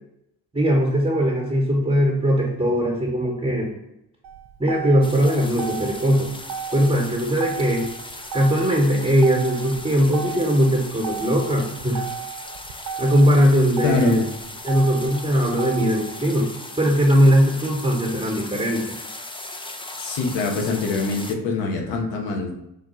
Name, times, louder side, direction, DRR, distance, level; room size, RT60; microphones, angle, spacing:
voice 1, 0.5-3.7 4.6-6.3 6.7-7.9 8.3-12.1 13.0-14.3 14.6-19.0, equal, 15° right, -2 dB, 1.0 m, -20 dB
Motor vehicle (road), 4.2-16.2, right 8 dB, 60° right, 0.5 m, -35 dB
sound 1, 5.0-21.4, left 2 dB, 10° left, 0.5 m, -38 dB
voice 2, 13.8-14.2 20.0-22.5, left 3 dB, 75° left, 1 dB, 1.0 m, -24 dB
3.7 x 2.3 x 4.2 m, 0.82 s
hypercardioid pair, 50°, 44 cm